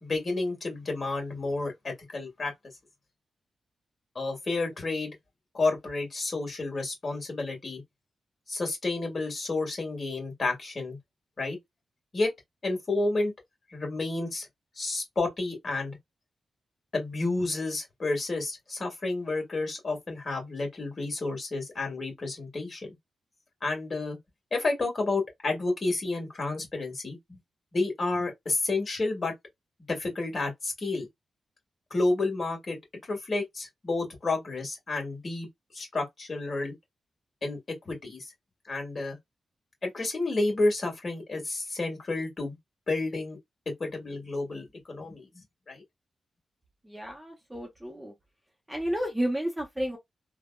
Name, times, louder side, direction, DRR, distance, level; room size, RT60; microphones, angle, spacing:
voice 1, 0.0-2.5 4.1-5.1 5.5-7.8 8.5-11.0 11.4-11.6 12.1-12.3 12.6-13.3 13.7-14.5 14.7-16.0 16.9-22.9 23.6-24.2 24.5-27.4 27.7-29.3 29.9-31.1 31.9-32.8 33.1-35.5 35.7-36.7 37.4-37.6 37.8-38.2 38.7-39.2 39.8-42.6 42.9-43.4 43.8-45.8, left 2 dB, 40° left, 1.8 m, -30 dB
voice 2, 46.9-48.1 48.7-50.0, equal, 10° right, 0.9 m, -31 dB
3.3 x 2.2 x 2.3 m
wide cardioid pair, 115°, 0 cm